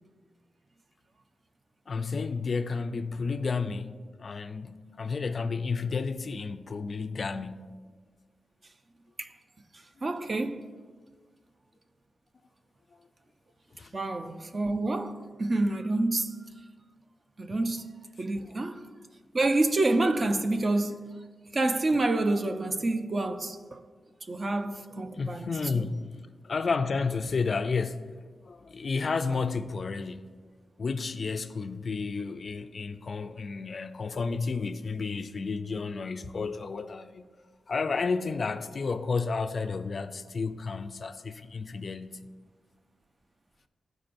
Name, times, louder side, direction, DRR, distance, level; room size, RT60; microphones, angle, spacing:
voice 1, 1.9-7.7 13.7-13.9 25.1-30.4 30.8-37.3 37.7-42.3, left 4 dB, 50° left, 0.3 m, -32 dB
voice 2, 10.0-10.7 13.9-16.4 17.4-17.9 18.2-18.8 19.3-21.0 21.5-23.8 24.3-25.9, right 2 dB, 35° right, 0.5 m, -28 dB
12.5 x 4.6 x 2.6 m
wide cardioid pair, 110°, 0 cm